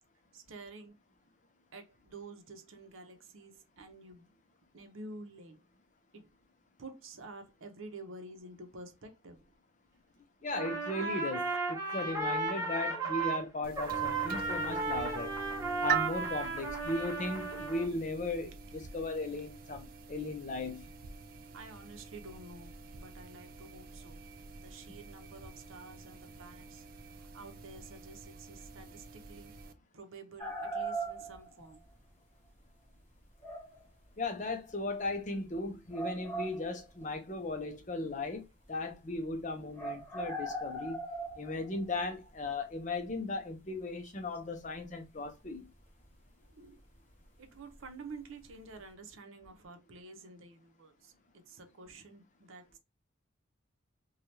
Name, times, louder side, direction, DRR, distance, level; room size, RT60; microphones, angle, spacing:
voice 1, 0.3-0.9 1.7-4.3 4.7-5.6 6.1-6.3 6.8-9.4 21.5-24.2 24.6-26.8 27.3-29.5 29.9-31.8 46.5-46.8 47.4-52.8, right 3 dB, 75° right, 0.7 m, -50 dB
voice 2, 10.4-15.3 15.8-20.9 34.2-38.4 38.7-41.0 41.4-45.7, left 2 dB, 35° left, 0.6 m, -37 dB
Trumpet, 10.5-13.4 13.7-17.9, right 3 dB, 15° right, 1.1 m, -35 dB
sound 1, 13.6-29.7, right 6 dB, 45° right, 0.3 m, -43 dB
sound 2, 30.4-31.7 33.4-33.8 35.1-35.2 35.9-37.1 39.7-41.9 44.3-44.4, right 2 dB, 10° left, 1.4 m, -39 dB
3.2 x 2.3 x 2.7 m
head